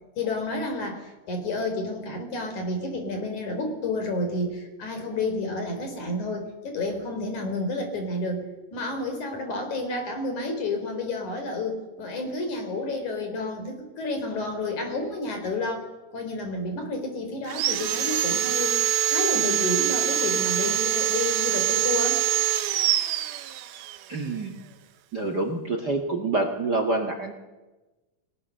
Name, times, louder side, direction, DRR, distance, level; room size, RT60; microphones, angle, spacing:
voice 1, 0.2-8.5 8.7-15.9 16.1-18.8 19.1-22.3, left 2 dB, 55° left, 5 dB, 5.2 m, -30 dB
Sawing, 17.5-24.0, right 11 dB, 90° right, 2.9 m, -24 dB
voice 2, 24.1-24.5 25.1-27.3, right 2 dB, 40° right, 6 dB, 1.5 m, -27 dB
30.0 x 19.5 x 6.6 m, 1.1 s
omnidirectional pair, 4.2 m